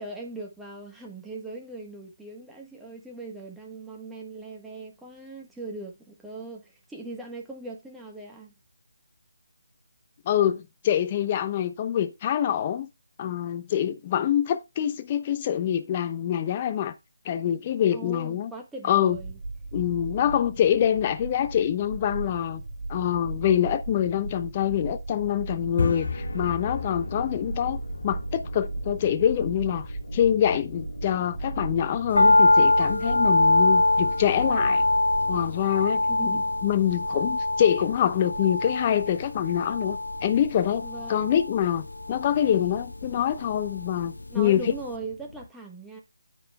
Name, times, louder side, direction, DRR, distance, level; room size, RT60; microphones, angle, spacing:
voice 1, 0.0-8.5 17.9-19.4 36.1-36.5 40.8-41.4 44.3-46.0, right 2 dB, 5° right, 1.3 m, -40 dB
voice 2, 10.3-12.9 13.2-16.9 17.2-18.5 18.8-19.2 19.7-22.6 22.9-34.8 35.3-36.0 36.6-44.6, left 10 dB, 25° left, 0.8 m, -25 dB
sound 1, 19.1-35.5, right 3 dB, 35° right, 3.8 m, -36 dB
sound 2, 25.6-45.5, left 4 dB, 60° left, 1.7 m, -39 dB
sound 3, 32.2-44.4 44.7-44.8, left 2 dB, 80° left, 0.5 m, -24 dB
14.0 x 5.5 x 2.3 m
figure-of-eight pair, 155°, 0 cm